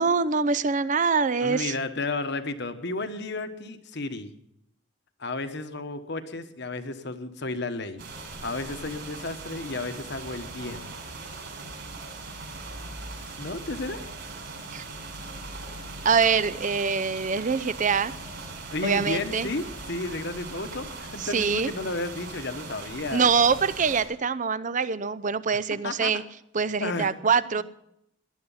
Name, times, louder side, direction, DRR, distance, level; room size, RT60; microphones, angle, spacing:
voice 1, 0.0-1.8 14.7-14.8 16.0-18.1 18.8-19.5 21.2-21.7 23.1-26.2 26.5-27.6, right 5 dB, 35° right, 15 dB, 0.5 m, -24 dB
voice 2, 1.4-4.3 5.2-8.0 8.4-10.9 13.4-14.0 18.7-23.3 25.8-26.2 26.8-27.1 27.4-27.6, left 2 dB, 55° left, 9 dB, 1.2 m, -32 dB
sound 1, 8.0-24.0, right 3 dB, 55° right, 5.9 m, -40 dB
18.5 x 11.5 x 5.6 m, 0.78 s
head